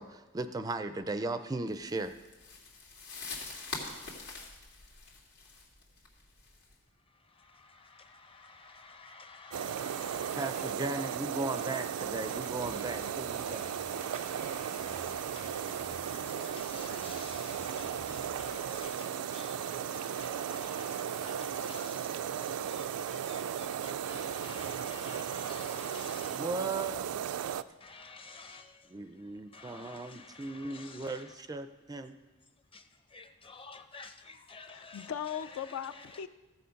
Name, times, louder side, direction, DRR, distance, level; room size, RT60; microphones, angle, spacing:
voice 1, 0.0-2.1 10.4-13.6 26.3-27.2 28.9-32.2, right 2 dB, 15° right, 0.4 m, -37 dB
sound 1, 1.8-6.7, left 3 dB, 90° left, 2.2 m, -44 dB
voice 2, 9.3-10.7 11.0-11.2 11.6-11.8 12.3-12.4 14.1-14.2 15.5-15.7 16.1-19.1 19.3-19.5 20.2-21.0 21.2-21.4 21.6-21.9 23.3-23.4 24.1-26.3 27.9-28.6 30.7-30.9 33.2-33.3 33.5-34.1 34.5-35.0, left 4 dB, 25° left, 0.7 m, -49 dB
sound 2, 9.5-27.6, right 9 dB, 90° right, 0.4 m, -36 dB
sound 3, 12.0-18.9, left 1 dB, 40° left, 1.3 m, -53 dB
voice 3, 34.7-36.3, left 8 dB, 60° left, 0.4 m, -38 dB
14.5 x 6.9 x 5.1 m
head